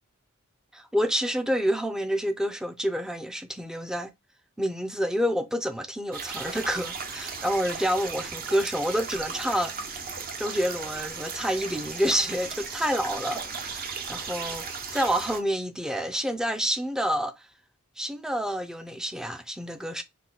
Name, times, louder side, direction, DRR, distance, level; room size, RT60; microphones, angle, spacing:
voice 1, 0.7-4.1 4.6-9.7 10.4-14.7 14.9-17.3 18.0-20.0, equal, 5° right, 0.5 m, -28 dB
sound 1, 6.1-15.4, right 5 dB, 45° right, 0.8 m, -36 dB
5.7 x 2.2 x 3.8 m
head